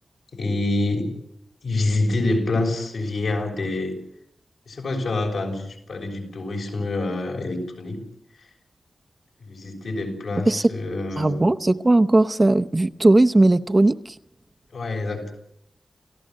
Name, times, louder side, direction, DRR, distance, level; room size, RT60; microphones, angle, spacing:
voice 1, 0.3-1.1 1.6-3.9 4.7-8.0 9.4-11.5 14.7-15.3, left 2 dB, 75° left, 1 dB, 6.6 m, -26 dB
voice 2, 11.2-14.1, right 2 dB, 25° right, 9 dB, 0.8 m, -18 dB
29.5 x 15.5 x 7.7 m, 0.77 s
wide cardioid pair, 100°, 0 cm